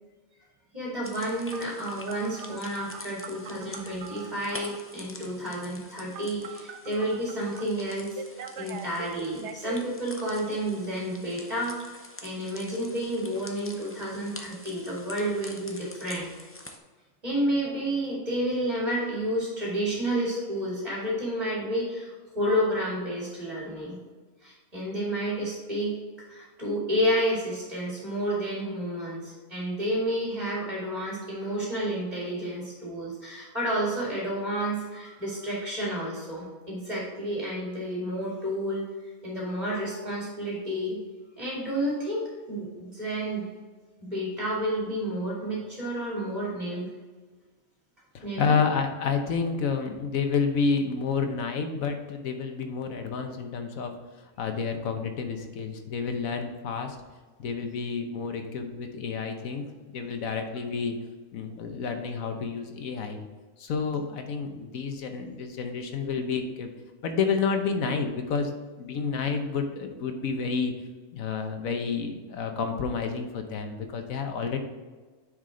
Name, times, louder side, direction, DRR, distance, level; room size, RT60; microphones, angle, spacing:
voice 1, 0.7-8.2 8.6-11.7 12.2-16.3 17.2-24.0 24.4-25.9 26.3-38.8 39.2-41.0 41.4-43.5 44.0-46.9 48.2-48.6, equal, 30° right, -6 dB, 2.5 m, -30 dB
sound 1, 1.0-16.8, left 2 dB, 20° left, 0.3 m, -46 dB
Telephone, 1.5-4.9 6.1-7.6 8.2-9.8, right 7 dB, 65° right, 0.9 m, -42 dB
voice 2, 48.1-53.9 54.4-57.0 57.4-61.0 61.3-63.2 63.6-66.7 67.0-68.5 68.8-70.7 71.1-74.6, left 5 dB, 85° left, 5 dB, 1.3 m, -29 dB
9.5 x 4.9 x 3.8 m, 1.4 s
omnidirectional pair, 1.4 m